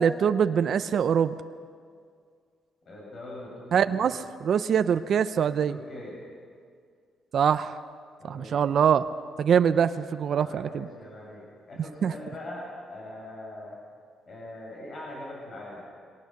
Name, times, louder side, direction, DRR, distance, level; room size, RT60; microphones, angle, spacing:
voice 1, 0.0-1.3 3.7-5.8 7.3-7.7 8.3-9.0 9.4-10.9 12.0-12.1, right 7 dB, 60° right, 11 dB, 0.6 m, -23 dB
voice 2, 2.8-4.1 5.7-6.2 8.2-8.6 10.3-13.8 14.3-15.9, left 1 dB, 50° left, -3 dB, 6.3 m, -42 dB
22.5 x 18.5 x 6.6 m, 2.1 s
cardioid pair, 90°, 0 cm